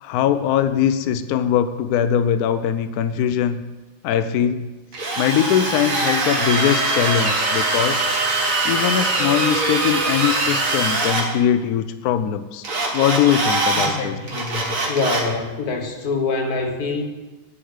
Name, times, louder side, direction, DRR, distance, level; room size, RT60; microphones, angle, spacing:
voice 1, 0.0-3.6 4.0-4.7 5.2-8.0 8.6-12.7 12.9-14.2, left 9 dB, 85° left, 11 dB, 0.8 m, -21 dB
Drill, 4.9-11.3 12.6-13.9 14.3-15.3, right 2 dB, 45° right, 1.8 m, -22 dB
voice 2, 13.7-17.0, left 4 dB, 55° left, 4 dB, 1.6 m, -25 dB
10.0 x 4.9 x 7.9 m, 1.1 s
omnidirectional pair, 2.2 m